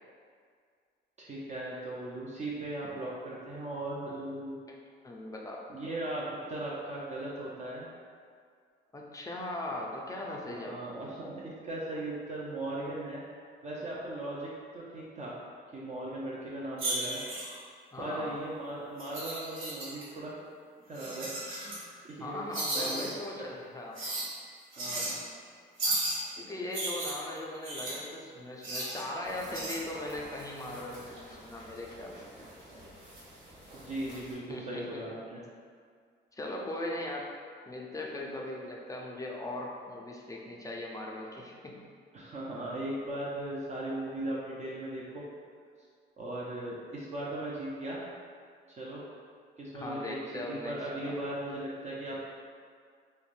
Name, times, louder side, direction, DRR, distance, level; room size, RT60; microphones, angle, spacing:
voice 1, 1.2-4.6 5.7-7.9 10.4-13.2 13.6-15.3 15.7-17.2 18.0-20.3 20.9-21.4 21.7-23.5 24.8-25.1 33.7-35.4 42.1-45.2 46.2-48.0 48.8-49.0 49.6-50.1 50.4-52.2, right 1 dB, 35° right, -6 dB, 0.5 m, -38 dB
voice 2, 5.0-5.6 8.9-10.8 17.9-18.4 22.2-24.0 26.3-32.2 34.5-35.0 36.3-37.3 37.7-41.9 49.7-51.2, left 1 dB, 15° left, -2 dB, 0.4 m, -39 dB
sound 1, 16.8-17.6 19.0-20.0 20.9-21.8 22.5-23.1 24.0-24.3 24.7-25.2 25.8-26.2 26.7-28.0 28.6-29.0 29.5-29.7, right 2 dB, 80° right, 0.7 m, -34 dB
sound 2, 29.2-34.3, equal, 65° right, 1.1 m, -50 dB
3.1 x 2.1 x 2.5 m, 2.1 s
cardioid pair, 90°, 20 cm